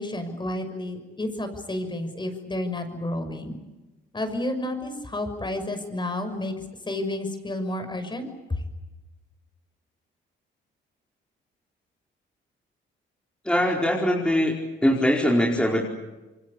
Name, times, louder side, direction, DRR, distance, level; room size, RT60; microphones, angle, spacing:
voice 1, 0.0-3.6 4.1-6.5 6.9-8.6, left 1 dB, 25° left, 8 dB, 6.1 m, -31 dB
voice 2, 13.4-14.5 14.8-15.8, equal, 5° left, -1 dB, 4.7 m, -21 dB
27.5 x 23.5 x 8.5 m, 1.1 s
cardioid pair, 90°, 20 cm